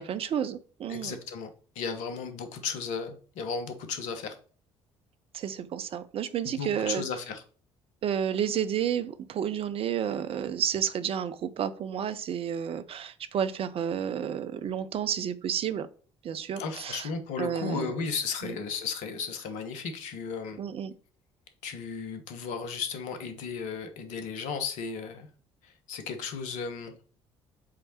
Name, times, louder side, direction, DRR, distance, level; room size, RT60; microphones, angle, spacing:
voice 1, 0.0-1.2 5.3-7.0 8.0-15.9 16.2-17.1 17.4-17.9 18.4-18.6 20.6-20.9, right 8 dB, 40° right, 0.5 m, -31 dB
voice 2, 0.9-1.5 1.7-4.4 6.4-7.4 16.6-20.6 21.6-25.3 25.6-26.9, left 5 dB, 60° left, 1.1 m, -35 dB
7.5 x 3.3 x 4.3 m
figure-of-eight pair, 50°, 14 cm